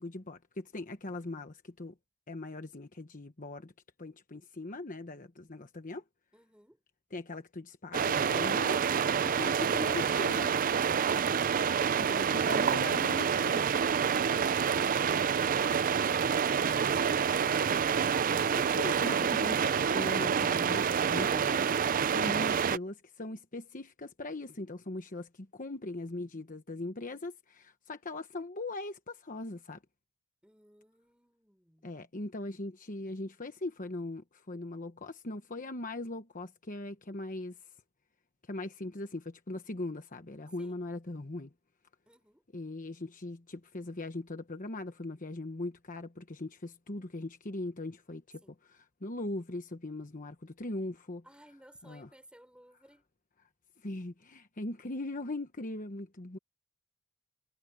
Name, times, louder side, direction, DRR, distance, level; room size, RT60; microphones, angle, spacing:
voice 1, 0.0-1.9 2.3-3.7 4.0-6.0 7.1-10.6 12.0-13.7 18.5-29.8 31.8-37.7 38.4-41.5 42.5-51.2 51.9-52.1 53.8-56.4, left 2 dB, 35° left, 1.1 m, -40 dB
voice 2, 6.3-6.8 30.4-31.9 40.6-40.8 42.1-42.4 48.4-48.6 51.2-53.0, right 1 dB, 5° right, 5.0 m, -57 dB
sound 1, 7.9-22.8, right 7 dB, 40° right, 0.4 m, -28 dB
head